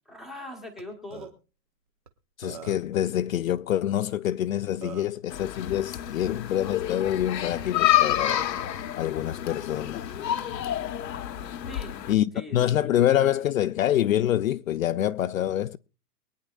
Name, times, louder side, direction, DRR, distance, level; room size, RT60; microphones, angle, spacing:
voice 1, 0.1-1.3 11.7-12.0 12.3-13.3, left 1 dB, ahead, 1.0 m, -42 dB
Burping eructation, 0.8-0.9 1.1-1.3 2.1-2.2 2.4-2.9 4.3-4.4 4.8-5.2, right 7 dB, 25° right, 0.6 m, -42 dB
voice 2, 2.4-8.5 9.0-10.1 12.1-15.8, left 12 dB, 55° left, 0.6 m, -26 dB
sound 1, 5.3-12.1, left 12 dB, 90° left, 1.4 m, -28 dB
23.0 x 9.4 x 2.4 m
supercardioid pair, 180°, 49 cm